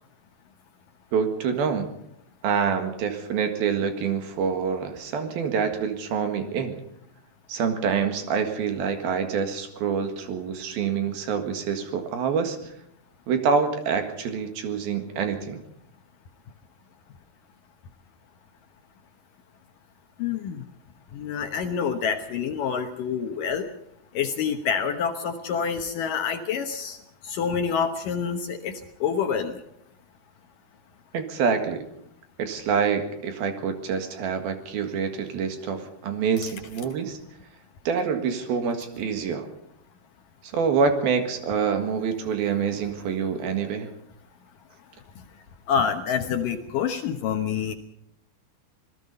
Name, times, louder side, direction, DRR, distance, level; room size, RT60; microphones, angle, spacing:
voice 1, 1.1-1.9 2.4-6.8 7.5-12.6 13.3-15.6 31.1-31.8 32.4-37.2 37.9-39.5 40.5-43.9, right 6 dB, 65° right, 7 dB, 3.5 m, -26 dB
voice 2, 20.2-20.6 21.1-23.7 24.2-27.0 27.3-28.7 29.0-29.5 45.7-47.8, left 7 dB, 65° left, 6 dB, 2.3 m, -27 dB
26.5 x 18.5 x 5.5 m, 0.75 s
omnidirectional pair, 4.9 m